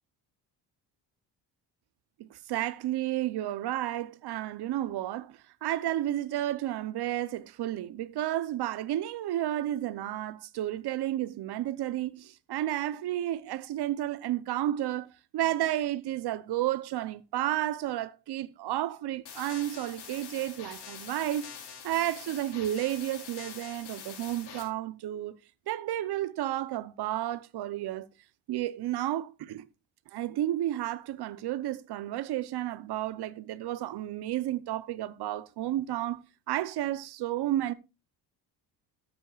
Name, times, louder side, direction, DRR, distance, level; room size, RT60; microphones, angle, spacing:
voice 1, 2.2-21.5 21.8-25.4 25.7-28.1 28.5-29.7 30.1-36.2 36.5-37.7, right 13 dB, 65° right, 0.8 m, -32 dB
sound 1, 19.2-24.6, left 7 dB, 65° left, 3.8 m, -45 dB
13.0 x 8.8 x 2.4 m
cardioid pair, 85°, 42 cm